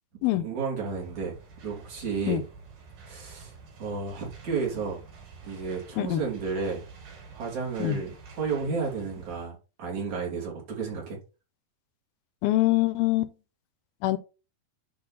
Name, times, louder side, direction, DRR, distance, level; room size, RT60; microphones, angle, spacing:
voice 1, 0.3-1.4 1.6-2.4 3.1-5.0 5.4-6.8 7.3-11.2, right 5 dB, 50° right, 3.9 m, -32 dB
sound 1, 0.8-9.5, right 4 dB, 70° right, 5.0 m, -48 dB
voice 2, 12.4-13.3 14.0-14.2, left 16 dB, 80° left, 2.4 m, -24 dB
10.5 x 3.6 x 4.2 m
omnidirectional pair, 4.3 m